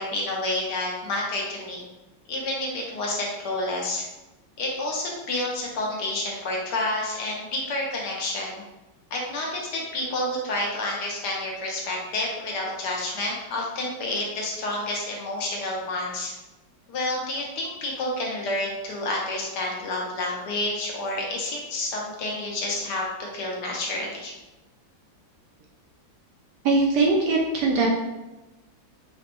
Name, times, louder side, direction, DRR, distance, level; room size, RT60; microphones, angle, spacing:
voice 1, 0.0-1.8 2.3-4.0 4.6-8.6 9.1-16.3 16.9-24.3, left 2 dB, 65° left, -2 dB, 1.2 m, -29 dB
voice 2, 26.6-27.9, right 3 dB, 70° right, -1 dB, 1.0 m, -21 dB
4.9 x 2.2 x 2.9 m, 1.0 s
omnidirectional pair, 2.2 m